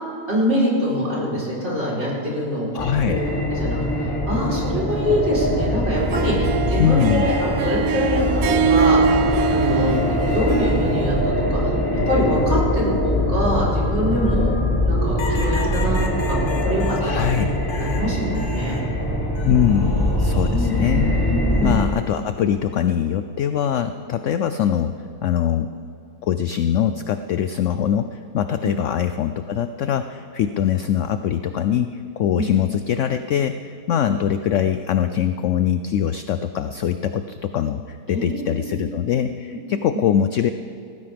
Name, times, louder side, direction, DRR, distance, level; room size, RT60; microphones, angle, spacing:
voice 1, 0.3-2.7 3.1-9.2 9.5-11.7 12.1-14.5 14.9-17.4 17.8-18.7 20.5-21.0 21.3-21.8 28.6-28.7 32.3-32.5 38.1-38.7 39.9-40.0, equal, 40° right, -6 dB, 4.3 m, -24 dB
voice 2, 2.7-3.2 6.8-7.4 17.0-17.5 19.4-21.2 21.6-24.9 25.2-25.7 26.2-40.5, left 9 dB, 75° left, 10 dB, 0.7 m, -22 dB
sound 1, 2.8-21.9, left 1 dB, 15° left, 1.4 m, -23 dB
Harp, 6.0-11.3, right 5 dB, 70° right, 1.0 m, -23 dB
sound 2, 15.2-18.9 19.3-20.1 21.5-21.9, left 3 dB, 50° left, 1.3 m, -35 dB
18.5 x 14.5 x 3.5 m, 2.7 s
omnidirectional pair, 1.7 m